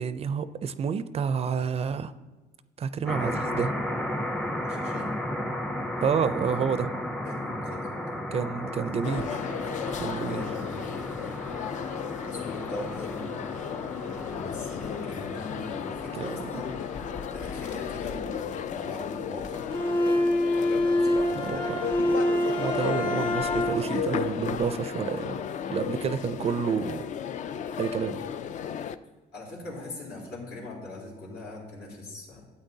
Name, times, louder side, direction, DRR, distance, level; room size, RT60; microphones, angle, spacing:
voice 1, 0.0-2.1 2.8-3.7 6.0-6.9 8.3-9.4 10.0-10.5 16.1-16.6 21.5-21.6 22.1-22.2 22.5-25.4 25.7-27.1 27.8-28.2, right 6 dB, 35° right, 13 dB, 0.4 m, -29 dB
sound 1, 3.1-17.8, left 1 dB, 5° left, 0.6 m, -35 dB
voice 2, 4.6-5.2 7.2-8.1 8.8-9.1 9.9-11.0 12.2-13.5 14.0-16.8 17.3-19.7 20.5-22.0 29.3-32.5, left 2 dB, 75° left, -3 dB, 3.4 m, -41 dB
sound 2, 9.0-29.0, left 8 dB, 45° left, 0.4 m, -34 dB
Bowed string instrument, 19.7-24.1, left 1 dB, 30° left, 1.6 m, -26 dB
13.0 x 8.4 x 2.7 m, 1.2 s
cardioid pair, 110°, 17 cm